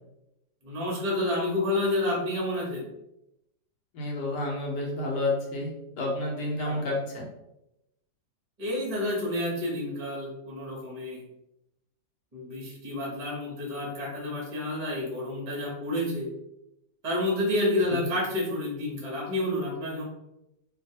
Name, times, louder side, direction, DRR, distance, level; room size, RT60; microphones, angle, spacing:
voice 1, 0.6-2.8 6.6-6.8 8.6-11.2 12.3-16.3 17.0-20.1, left 1 dB, 35° right, -4 dB, 0.5 m, -29 dB
voice 2, 3.9-5.7 6.0-7.2 17.9-18.1, left 2 dB, 70° left, -2 dB, 1.2 m, -30 dB
3.0 x 2.3 x 2.7 m, 0.88 s
omnidirectional pair, 2.0 m